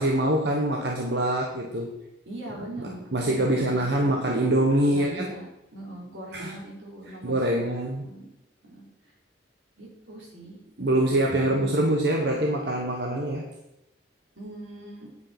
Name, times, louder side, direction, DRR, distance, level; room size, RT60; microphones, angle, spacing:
voice 1, 0.0-2.0 2.8-5.3 6.3-6.5 7.2-8.0 10.8-13.5, right 1 dB, 65° right, 1 dB, 1.3 m, -24 dB
voice 2, 2.3-4.1 4.9-8.3 8.6-9.1 9.8-10.6 11.0-11.8 14.4-15.1, right 1 dB, 85° right, -2 dB, 4.1 m, -41 dB
10.0 x 8.4 x 4.4 m, 0.88 s
head